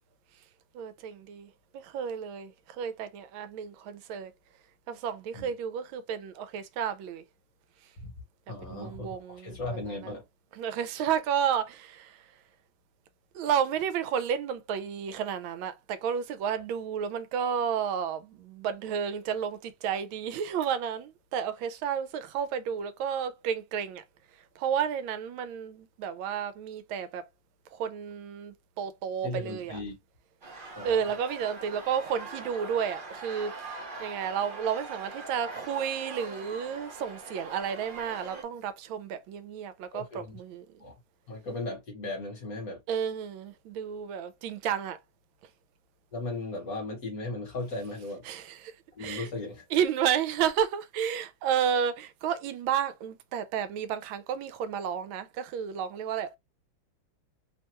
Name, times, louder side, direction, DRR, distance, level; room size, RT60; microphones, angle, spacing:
voice 1, 0.7-4.3 4.9-7.2 8.7-9.6 9.9-10.1 10.5-12.2 13.3-24.0 24.6-27.2 27.7-29.8 30.8-40.7 42.9-45.0 48.2-48.7 49.0-49.3 49.7-56.4, right 8 dB, 80° right, 1.3 m, -31 dB
voice 2, 8.5-10.2 29.2-29.9 30.8-31.0 39.9-40.4 40.8-40.9 41.3-42.8 46.1-48.3 49.0-49.6, left 2 dB, 50° left, 1.4 m, -36 dB
sound 1, 30.4-38.4, right 3 dB, 65° right, 0.5 m, -42 dB
3.4 x 2.2 x 2.9 m
omnidirectional pair, 2.2 m